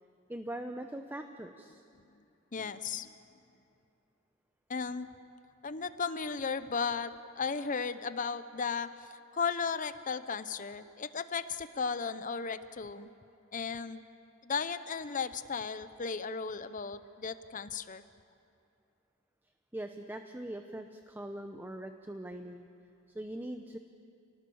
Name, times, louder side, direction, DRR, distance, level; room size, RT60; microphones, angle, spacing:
voice 1, 0.3-1.8 19.7-22.7 23.1-23.8, right 1 dB, 10° right, 6 dB, 0.7 m, -41 dB
voice 2, 2.5-3.1 4.7-5.1 5.6-13.1 13.5-14.0 14.4-18.0, left 5 dB, 40° left, 12 dB, 0.7 m, -35 dB
28.0 x 19.5 x 7.1 m, 2.6 s
head